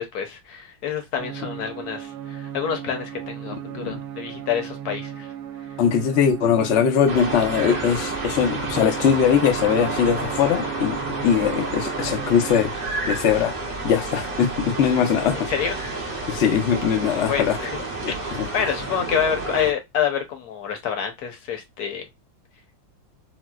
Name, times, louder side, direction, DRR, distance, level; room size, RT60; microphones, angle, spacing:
voice 1, 0.0-5.3 15.5-15.8 16.1-16.3 17.1-17.8 18.1-22.0, left 8 dB, 60° left, 1.2 m, -27 dB
sound 1, 1.2-12.7, right 10 dB, 65° right, 1.2 m, -36 dB
voice 2, 5.8-12.7 13.1-13.5 13.8-15.5 16.3-17.6 18.0-18.5, left 7 dB, 75° left, 0.6 m, -21 dB
sound 2, 7.1-19.7, right 2 dB, 40° right, 0.6 m, -30 dB
4.2 x 2.1 x 2.3 m
omnidirectional pair, 2.1 m